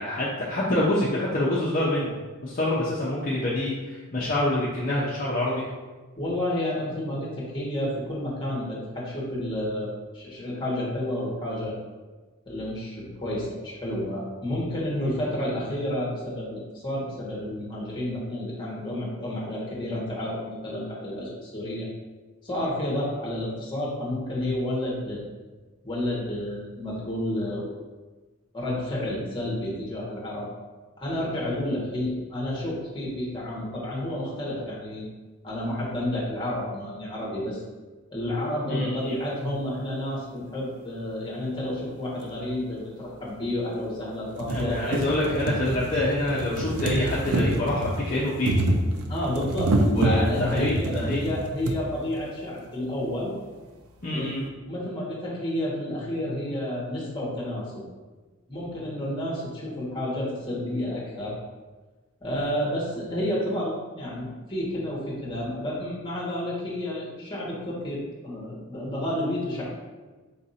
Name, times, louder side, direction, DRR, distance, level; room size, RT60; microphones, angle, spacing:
voice 1, 0.0-2.1 2.4-3.7 4.1-5.6 38.7-39.1 44.5-48.5 49.9-51.2 54.0-54.4, left 1 dB, 40° left, -7 dB, 0.6 m, -26 dB
voice 2, 6.2-11.7 12.5-21.9 22.4-25.2 25.8-27.7 28.5-30.5 31.0-35.1 35.4-37.6 38.1-45.0 49.1-53.3 54.1-57.8 58.5-61.3 62.2-69.8, left 1 dB, 20° left, -5 dB, 1.1 m, -30 dB
sound 1, 42.2-42.3 43.3-43.4 43.8-43.9 44.2-51.8 52.7-52.8 53.0-53.1, right 2 dB, 85° right, 0.5 m, -27 dB
4.0 x 2.6 x 4.1 m, 1.3 s
head